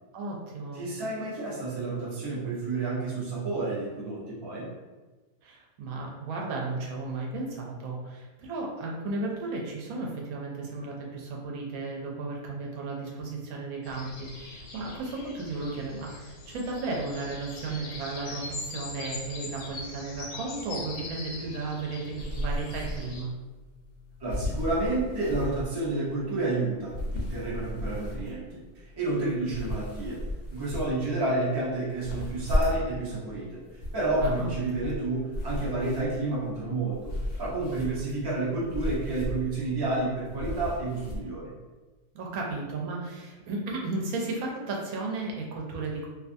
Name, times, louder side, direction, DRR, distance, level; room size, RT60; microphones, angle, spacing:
voice 1, 0.1-0.8 5.4-23.3 34.2-34.5 42.1-46.1, right 3 dB, 75° right, -1 dB, 1.1 m, -34 dB
voice 2, 0.7-4.7 24.2-30.2 30.5-37.1 37.4-41.5, right 2 dB, 35° right, -6 dB, 0.3 m, -30 dB
sound 1, 13.8-23.2, left 3 dB, 90° left, 1.1 m, -42 dB
sound 2, 22.2-41.2, left 1 dB, 65° left, 0.6 m, -36 dB
2.5 x 2.4 x 2.5 m, 1.2 s
omnidirectional pair, 1.6 m